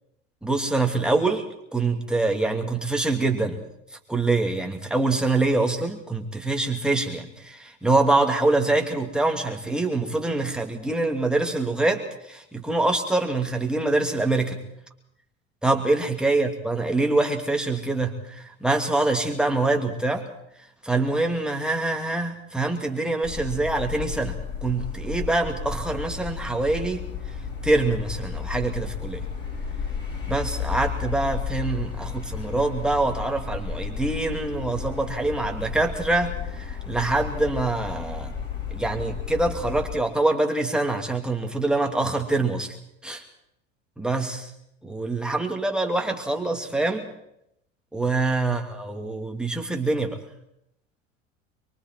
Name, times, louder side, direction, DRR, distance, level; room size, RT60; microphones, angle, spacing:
voice 1, 0.4-3.6 4.1-14.6 15.6-20.3 20.8-27.0 27.6-29.2 30.3-38.3 38.7-42.8 43.0-43.2 44.0-44.5 44.8-47.1 47.9-50.2, right 2 dB, ahead, 3 dB, 2.7 m, -25 dB
sound 1, 23.2-39.9, left 6 dB, 25° left, 5.2 m, -33 dB
24.0 x 23.5 x 4.7 m, 0.78 s
figure-of-eight pair, 75°, 38 cm